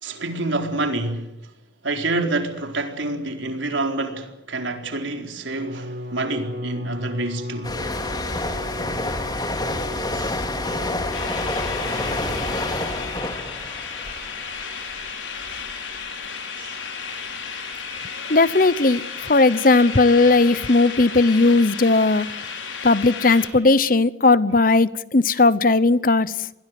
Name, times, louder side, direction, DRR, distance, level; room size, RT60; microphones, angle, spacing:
voice 1, 0.0-1.3 1.8-7.8 10.1-10.4 10.6-10.8 16.5-16.8, right 2 dB, 80° right, 4.3 m, -27 dB
Bowed string instrument, 5.4-13.7, left 1 dB, 55° right, 2.0 m, -36 dB
sound 1, 7.6-15.1 15.4-15.7, left 2 dB, 20° left, 2.7 m, -28 dB
sound 2, 11.1-23.5, left 6 dB, 85° left, 5.4 m, -33 dB
voice 2, 18.3-22.3 22.8-26.3, left 3 dB, 45° left, 0.9 m, -17 dB
29.0 x 22.0 x 7.8 m
head